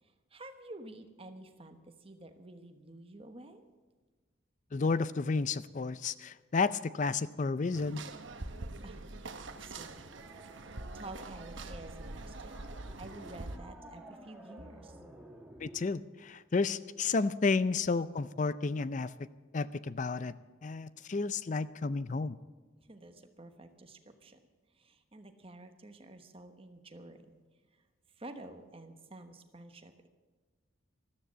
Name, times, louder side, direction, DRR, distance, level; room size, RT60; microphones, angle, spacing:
voice 1, 0.0-3.6 8.8-10.1 10.6-12.6 13.0-15.0 22.8-24.4 24.7-27.4 27.7-27.8 28.1-30.1, right 2 dB, 30° right, 7 dB, 1.1 m, -50 dB
voice 2, 4.7-8.0 15.6-19.1 19.5-20.3 20.6-22.4, left 4 dB, 35° left, 16 dB, 0.4 m, -31 dB
sound 1, 7.7-13.6, right 2 dB, 65° right, 1.0 m, -44 dB
sound 2, 9.3-15.9, right 1 dB, 5° right, 1.6 m, -54 dB
13.5 x 13.0 x 7.4 m, 1.3 s
head